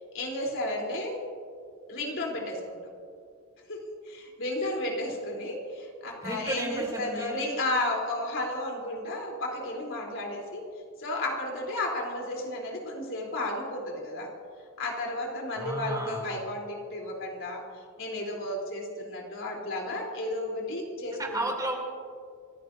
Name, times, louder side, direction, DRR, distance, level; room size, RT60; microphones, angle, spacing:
voice 1, 0.1-1.2 1.9-2.8 3.7-3.8 4.0-10.6 11.0-14.3 14.8-17.6 18.0-21.4, left 1 dB, 60° left, -1 dB, 3.7 m, -33 dB
voice 2, 6.2-7.4 15.6-16.3 21.1-21.8, right 1 dB, 15° right, 0 dB, 3.0 m, -33 dB
29.5 x 15.5 x 2.7 m, 2.2 s
head